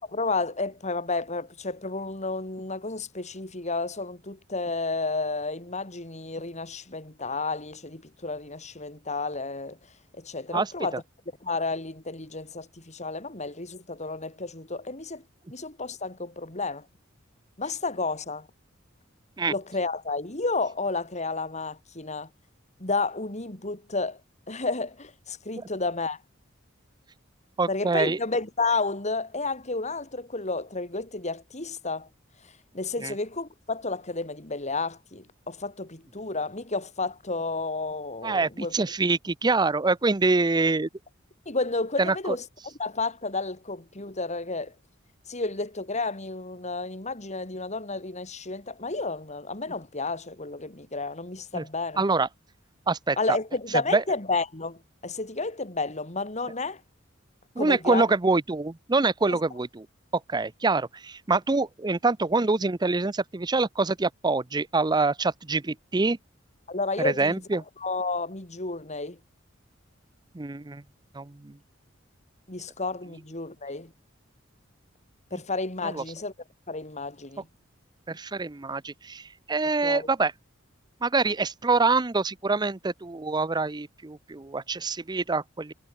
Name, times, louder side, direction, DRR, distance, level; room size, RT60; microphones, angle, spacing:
voice 1, 0.0-9.8 10.1-11.0 11.4-15.2 15.5-16.9 17.6-18.5 19.5-22.3 22.8-24.2 24.5-26.2 27.7-32.1 32.4-38.7 41.5-44.7 45.3-52.0 53.2-56.8 57.6-58.1 66.7-67.4 67.8-69.2 72.5-73.9 75.3-76.3 76.7-77.5 79.8-80.1, left 3 dB, 35° left, 3.6 m, -31 dB
voice 2, 27.6-28.2 33.0-33.1 38.2-40.9 42.0-42.4 51.5-51.6 52.0-52.3 52.9-53.4 53.9-54.0 57.6-59.9 60.3-66.2 67.0-67.6 70.3-70.8 71.1-71.6 75.8-76.0 78.1-80.3 81.0-85.7, right 3 dB, 20° right, 0.6 m, -25 dB
head